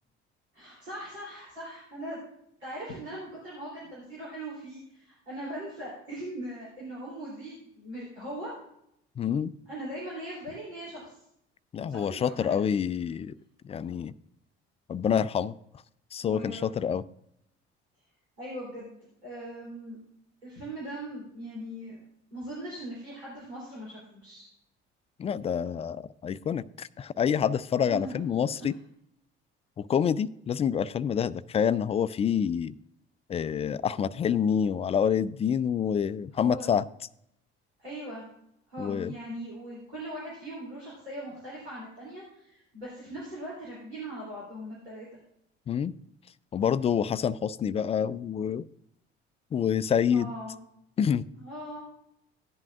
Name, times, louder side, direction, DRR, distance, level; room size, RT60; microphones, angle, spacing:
voice 1, 0.5-2.2 2.6-8.5 9.7-11.1 11.9-12.6 16.2-16.7 18.4-18.9 19.2-20.0 20.4-22.0 22.3-24.5 27.8-28.1 28.6-28.7 36.3-36.7 37.8-38.2 38.7-45.2 50.1-50.6 51.3-51.9, right 1 dB, 85° right, -7 dB, 3.2 m, -40 dB
voice 2, 9.2-9.5 11.7-13.3 13.6-14.1 14.9-15.5 16.1-17.0 25.2-28.7 29.8-32.7 33.3-36.8 38.8-39.1 45.7-45.9 46.5-48.7 49.5-50.3 51.0-51.3, left 8 dB, 20° left, 17 dB, 0.3 m, -27 dB
16.0 x 10.5 x 2.4 m, 0.75 s
figure-of-eight pair, 55°, 32 cm